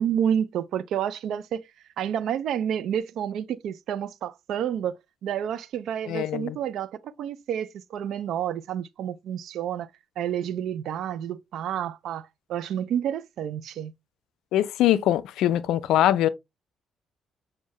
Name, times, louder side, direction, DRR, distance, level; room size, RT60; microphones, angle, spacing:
voice 1, 0.0-1.6 2.0-5.0 5.2-9.9 10.2-13.9, right 9 dB, 65° right, 0.3 m, -29 dB
voice 2, 6.1-6.6 14.5-16.3, left 12 dB, 70° left, 0.3 m, -22 dB
6.2 x 2.2 x 2.8 m
hypercardioid pair, 45°, 0 cm